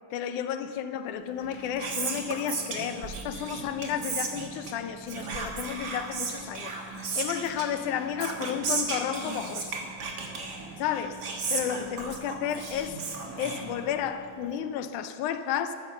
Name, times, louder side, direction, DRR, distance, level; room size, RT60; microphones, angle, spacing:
voice 1, 0.1-9.8 10.8-11.2 11.5-13.0 13.4-15.8, left 9 dB, 80° left, 1.9 m, -32 dB
Whispering, 1.3-14.2, right 4 dB, 50° right, 1.3 m, -35 dB
14.5 x 12.5 x 6.8 m
omnidirectional pair, 4.0 m